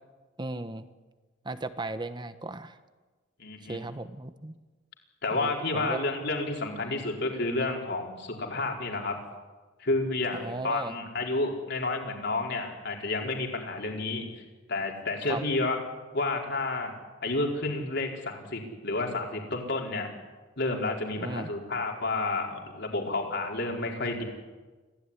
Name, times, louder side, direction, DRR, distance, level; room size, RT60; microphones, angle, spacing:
voice 1, 0.4-0.9 1.4-2.8 3.7-4.5 5.3-6.0 6.9-7.0 10.3-10.9 15.3-15.4 21.2-21.5, right 2 dB, 25° right, 10 dB, 1.2 m, -36 dB
voice 2, 3.4-3.8 5.2-9.2 9.8-14.2 14.7-15.8 16.1-16.9 17.2-20.1 20.6-24.2, left 2 dB, 60° left, 1 dB, 4.6 m, -30 dB
26.0 x 16.5 x 10.0 m, 1.3 s
head